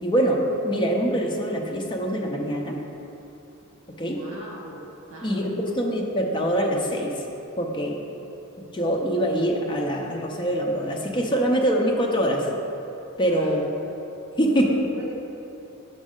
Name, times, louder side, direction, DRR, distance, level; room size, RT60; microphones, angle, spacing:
voice 1, 0.0-2.8 4.0-4.2 5.2-7.1 7.6-8.0 8.7-12.5 13.2-13.7 14.4-14.8, equal, 20° left, 0 dB, 0.6 m, -24 dB
voice 2, 4.1-4.8 5.1-5.7 13.3-13.5 14.4-15.1, right 1 dB, 65° right, -4 dB, 1.3 m, -40 dB
6.2 x 5.2 x 3.7 m, 2.9 s
head